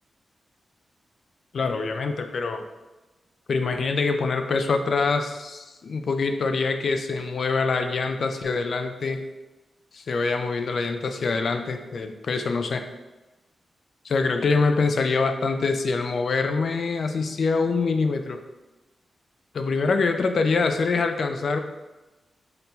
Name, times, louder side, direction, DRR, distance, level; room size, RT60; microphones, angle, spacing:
voice 1, 1.5-2.6 3.5-9.2 9.9-12.8 14.0-18.4 19.5-21.6, left 4 dB, 55° left, 6 dB, 0.3 m, -25 dB
5.8 x 2.6 x 2.2 m, 1.1 s
wide cardioid pair, 160°, 0 cm